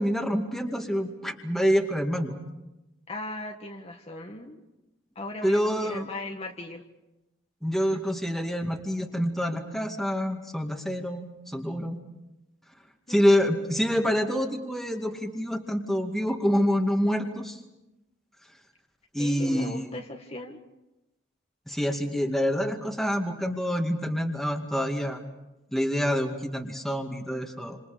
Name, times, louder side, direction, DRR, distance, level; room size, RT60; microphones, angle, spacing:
voice 1, 0.0-2.4 5.4-6.1 7.6-12.0 13.1-17.6 19.1-19.9 21.7-25.2 25.7-27.8, equal, ahead, 2 dB, 2.2 m, -27 dB
voice 2, 3.1-4.6 5.1-6.8 13.1-13.3 19.2-20.6, left 2 dB, 30° left, 2 dB, 1.7 m, -38 dB
29.5 x 27.5 x 5.2 m, 0.95 s
head